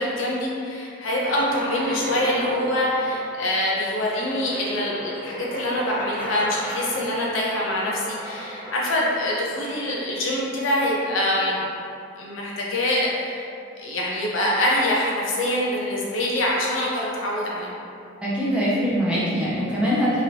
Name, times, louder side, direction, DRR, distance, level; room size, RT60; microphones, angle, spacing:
voice 1, 0.0-11.6 12.2-13.5 13.8-17.7, left 1 dB, 80° left, -4 dB, 0.6 m, -25 dB
sound 1, 1.2-10.6, equal, 25° left, 1.0 m, -35 dB
voice 2, 18.2-20.2, equal, 5° right, -9 dB, 0.5 m, -23 dB
3.0 x 2.8 x 2.6 m, 2.6 s
head